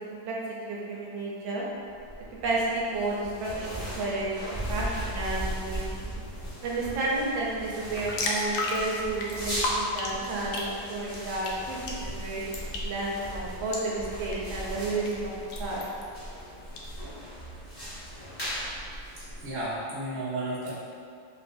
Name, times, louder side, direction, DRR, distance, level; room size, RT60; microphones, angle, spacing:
voice 1, 0.6-1.6 2.3-6.1 6.6-15.3 15.6-15.8, right 2 dB, 75° right, -5 dB, 1.4 m, -32 dB
sound 1, 1.9-19.8, equal, 25° left, 0.5 m, -38 dB
sound 2, 7.7-16.9, left 2 dB, 80° left, 1.3 m, -36 dB
voice 2, 17.6-18.1 19.2-20.7, right 1 dB, 20° right, -11 dB, 0.6 m, -34 dB
3.5 x 2.9 x 2.6 m, 2.3 s
omnidirectional pair, 2.2 m